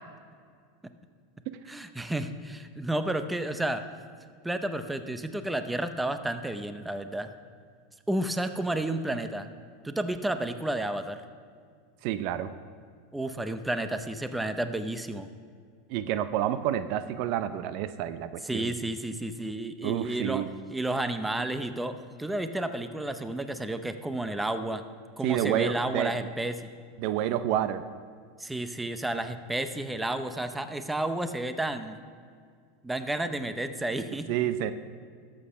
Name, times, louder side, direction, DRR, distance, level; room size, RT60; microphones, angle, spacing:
voice 1, 1.7-3.8 4.4-7.3 8.1-9.5 9.8-11.2 13.1-15.3 18.4-20.4 20.7-24.8 25.2-26.6 28.4-32.0 32.8-34.3, right 1 dB, 5° right, 9 dB, 0.6 m, -31 dB
voice 2, 12.0-12.5 15.9-18.7 19.8-20.5 25.2-26.3 27.0-27.8 34.3-34.7, right 11 dB, 55° right, 12 dB, 0.5 m, -29 dB
12.5 x 7.5 x 5.7 m, 2.1 s
supercardioid pair, 125°, 0 cm